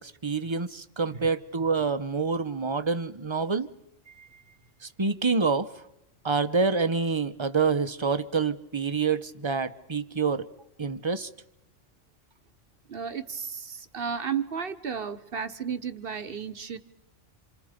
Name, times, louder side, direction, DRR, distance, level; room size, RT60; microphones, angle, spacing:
voice 1, 0.0-3.7 5.0-5.7 6.2-10.5 10.8-11.3, right 4 dB, 25° right, 0.9 m, -27 dB
voice 2, 4.1-4.5 12.9-16.8, right 7 dB, 50° right, 1.4 m, -34 dB
28.5 x 28.0 x 5.2 m
omnidirectional pair, 1.3 m